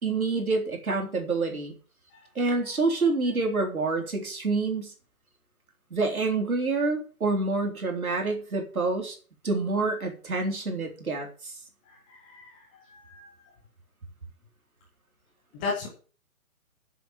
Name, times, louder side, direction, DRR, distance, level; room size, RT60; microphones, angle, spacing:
voice 1, 0.0-1.7 2.4-4.9 5.9-9.2 9.4-11.6, right 3 dB, 75° right, 3 dB, 3.8 m, -27 dB
voice 2, 11.9-13.5 15.5-15.9, left 4 dB, 5° left, -1 dB, 0.7 m, -37 dB
8.2 x 7.3 x 8.0 m, 0.39 s
figure-of-eight pair, 145°, 43 cm